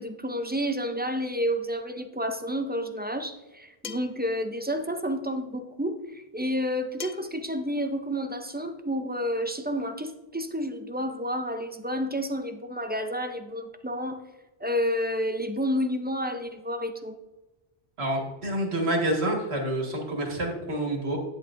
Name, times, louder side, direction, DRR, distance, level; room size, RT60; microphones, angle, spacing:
voice 1, 0.0-14.2 14.6-17.2, equal, 15° right, 7 dB, 0.3 m, -30 dB
sound 1, 3.8-4.2 7.0-7.4, left 7 dB, 55° left, 0.6 m, -39 dB
voice 2, 18.0-21.2, right 1 dB, 85° right, 1 dB, 1.9 m, -28 dB
9.7 x 8.3 x 2.5 m, 1.0 s
omnidirectional pair, 1.1 m